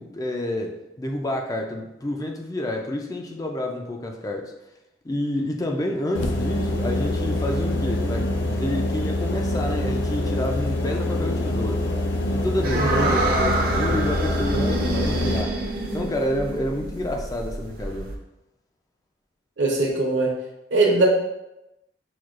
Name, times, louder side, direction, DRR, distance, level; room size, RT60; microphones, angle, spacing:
voice 1, 0.0-4.5 5.0-11.9 12.3-15.6 15.9-18.2, left 1 dB, 20° left, 2 dB, 0.3 m, -29 dB
sound 1, 6.1-15.4, left 1 dB, 75° left, 0.5 m, -25 dB
sound 2, 12.6-18.1, right 2 dB, 50° right, 0.5 m, -27 dB
voice 2, 12.7-13.1 19.6-20.3 20.7-21.1, right 3 dB, 75° right, -1 dB, 0.9 m, -21 dB
6.1 x 2.2 x 2.4 m, 0.92 s
head